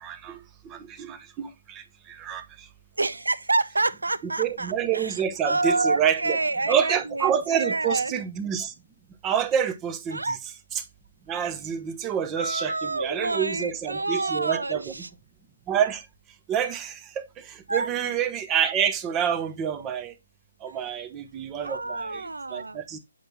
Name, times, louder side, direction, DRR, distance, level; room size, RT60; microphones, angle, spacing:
voice 1, 0.0-2.7 4.4-6.4 6.7-8.7 9.2-10.4 10.7-10.8 11.3-14.9 15.7-16.1 16.5-20.1 20.6-23.0, right 8 dB, 20° right, 0.8 m, -28 dB
voice 2, 3.0-8.1 10.1-10.4 12.4-15.1 17.7-17.9 21.6-22.8, right 3 dB, 85° right, 0.7 m, -28 dB
7.8 x 5.5 x 2.7 m
figure-of-eight pair, 140°, 0 cm